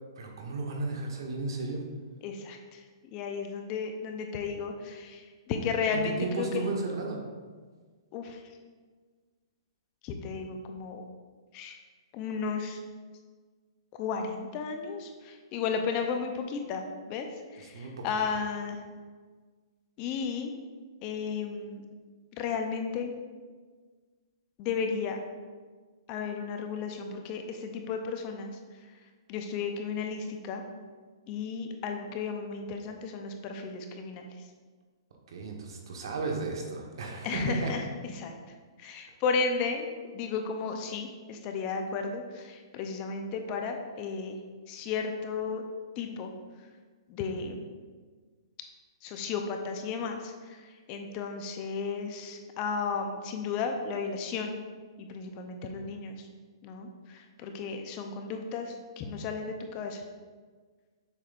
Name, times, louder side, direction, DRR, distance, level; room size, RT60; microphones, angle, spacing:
voice 1, 0.2-1.8 6.2-7.2 17.6-18.0 35.3-37.7, right 3 dB, 70° right, 1 dB, 1.3 m, -34 dB
voice 2, 2.2-2.8 3.1-6.7 8.1-8.4 10.0-11.0 11.5-11.8 12.1-12.8 14.0-17.3 17.5-18.8 20.0-20.5 21.0-21.8 22.3-23.1 24.6-25.2 26.1-28.5 29.3-30.6 31.3-34.3 37.2-37.8 38.1-38.3 38.8-39.9 40.1-44.4 44.7-45.6 46.0-46.3 47.1-47.6 49.0-50.6 50.9-54.6 55.0-56.2 56.6-60.0, left 5 dB, 30° left, 4 dB, 0.6 m, -34 dB
7.1 x 6.1 x 2.6 m, 1.5 s
hypercardioid pair, 145°, 3 cm